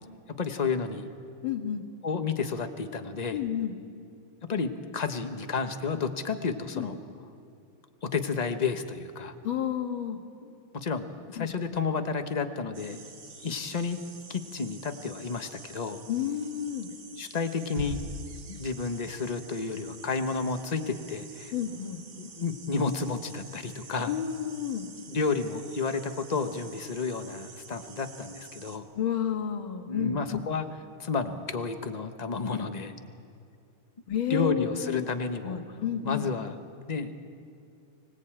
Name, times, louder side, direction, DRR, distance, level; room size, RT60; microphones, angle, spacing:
voice 1, 0.4-1.1 2.0-3.4 4.5-7.0 8.0-9.3 10.7-13.1 13.4-14.0 14.3-16.0 17.2-18.0 18.5-21.5 22.2-24.1 25.1-28.8 29.9-30.7 31.0-32.9 34.3-35.6 36.0-36.6 36.9-37.1, left 4 dB, 35° left, 7 dB, 0.7 m, -31 dB
voice 2, 1.4-1.8 3.3-3.8 6.7-6.9 9.4-10.2 11.4-11.5 16.1-16.9 21.5-22.0 24.0-24.9 29.0-30.5 34.1-35.1 35.4-36.3, left 9 dB, 70° left, 6 dB, 2.3 m, -31 dB
sound 1, 12.7-28.8, right 5 dB, 55° right, 2.1 m, -49 dB
sound 2, 17.8-19.2, right 2 dB, 80° right, 4.7 m, -39 dB
24.5 x 18.0 x 8.8 m, 2.4 s
omnidirectional pair, 2.3 m